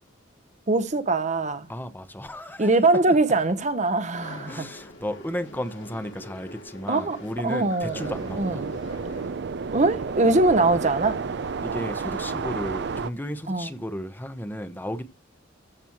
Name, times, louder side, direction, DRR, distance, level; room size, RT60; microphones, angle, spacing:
voice 1, 0.7-1.7 2.6-4.6 6.9-7.2 7.4-8.0 8.4-8.6 9.7-11.2 13.5-13.7, right 2 dB, 35° right, 0.9 m, -22 dB
voice 2, 1.7-3.2 4.4-8.6 11.6-15.0, equal, 10° left, 0.8 m, -34 dB
sound 1, 4.1-9.3, left 2 dB, 65° left, 3.4 m, -44 dB
sound 2, 7.9-13.1, right 5 dB, 55° right, 0.5 m, -31 dB
14.0 x 6.1 x 3.0 m
head